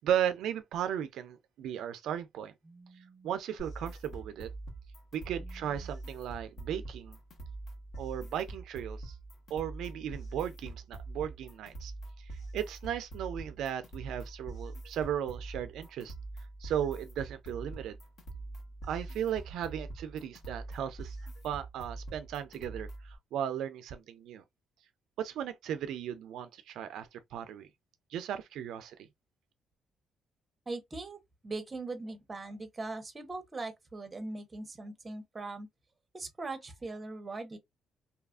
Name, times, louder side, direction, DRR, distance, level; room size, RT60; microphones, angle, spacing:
voice 1, 0.0-2.5 3.2-4.5 5.1-7.2 8.0-9.2 9.5-11.9 12.5-16.1 16.6-18.0 18.9-21.2 21.4-24.4 25.2-27.7 28.1-29.0, right 9 dB, 80° right, 0.3 m, -36 dB
voice 2, 2.6-3.3 5.3-5.9 30.7-31.2 31.4-35.7 36.1-37.6, right 3 dB, 20° right, 0.7 m, -41 dB
sound 1, 3.6-23.2, right 2 dB, 55° left, 1.1 m, -44 dB
2.7 x 2.3 x 2.3 m
cardioid pair, 135°, 0 cm